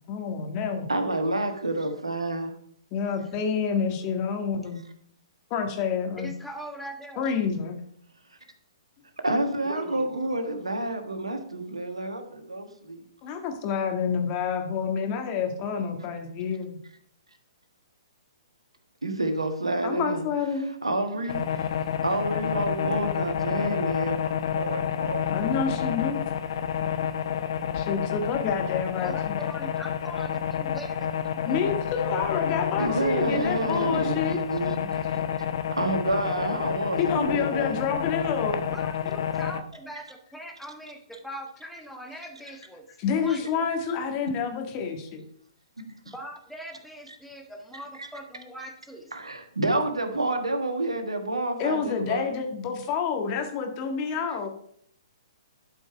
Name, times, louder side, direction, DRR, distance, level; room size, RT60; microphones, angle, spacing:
voice 1, 0.1-0.9 2.9-4.8 5.5-6.3 7.2-7.8 13.2-16.8 19.8-20.7 25.3-26.2 27.7-29.4 31.5-34.4 35.2-35.3 37.0-38.6 43.0-45.2 51.6-54.5, left 6 dB, 30° left, 4 dB, 1.7 m, -28 dB
voice 2, 0.9-2.5 9.2-13.0 19.0-20.2 20.8-21.6 22.0-25.5 32.8-35.2 35.7-37.9 46.1-46.2 48.0-48.1 49.1-52.3, right 2 dB, 80° right, 6 dB, 1.4 m, -29 dB
voice 3, 6.2-7.3 9.6-10.3 29.0-31.8 38.7-42.9 43.1-43.7 46.1-49.1, right 1 dB, ahead, 2 dB, 1.4 m, -41 dB
Electric noise, 21.3-39.6, left 9 dB, 55° left, 0.8 m, -29 dB
11.5 x 5.3 x 4.7 m, 0.66 s
figure-of-eight pair, 120°, 3 cm